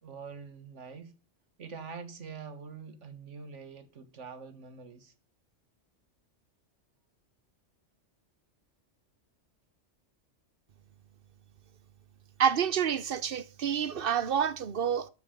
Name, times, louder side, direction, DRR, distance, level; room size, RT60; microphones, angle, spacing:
voice 1, 0.0-1.1 1.6-5.1, right 5 dB, 80° right, 1.7 m, -45 dB
voice 2, 12.4-15.1, right 8 dB, 55° right, 0.9 m, -28 dB
13.0 x 7.5 x 5.0 m
omnidirectional pair, 1.2 m